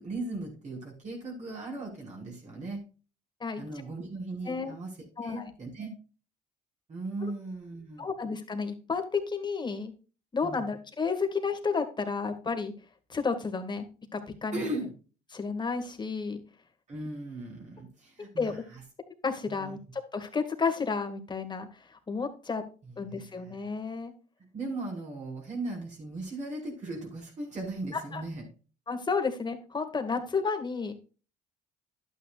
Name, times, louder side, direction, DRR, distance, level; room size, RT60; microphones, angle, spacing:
voice 1, 0.0-2.8 3.6-4.9 5.2-5.9 6.9-8.1 10.4-10.7 14.5-14.9 16.9-18.8 19.5-19.8 22.8-23.6 24.5-28.5, right 2 dB, 45° right, -2 dB, 5.1 m, -38 dB
voice 2, 4.4-4.8 5.2-5.5 7.2-7.3 8.0-9.9 10.3-12.7 13.1-13.9 14.1-14.6 15.3-16.4 18.4-18.6 19.2-19.8 20.1-22.6 23.0-24.1 27.9-28.2 28.9-30.9, left 5 dB, 25° left, 5 dB, 2.1 m, -31 dB
11.5 x 9.2 x 2.5 m, 0.35 s
cardioid pair, 90°, 17 cm